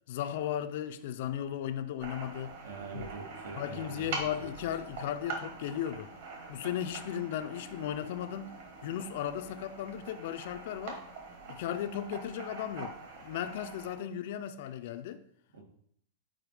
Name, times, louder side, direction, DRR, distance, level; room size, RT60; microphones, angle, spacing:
voice 1, 0.1-2.5 2.9-3.0 3.6-6.1 6.5-8.5 8.8-11.0 11.5-15.2, left 10 dB, 40° left, 0.4 m, -36 dB
sound 1, 2.0-13.9, right 3 dB, 45° right, 1.4 m, -44 dB
voice 2, 2.6-4.1 4.4-4.5 15.5-15.6, right 4 dB, 90° right, 1.9 m, -44 dB
5.0 x 4.5 x 4.8 m
supercardioid pair, 180°, 0 cm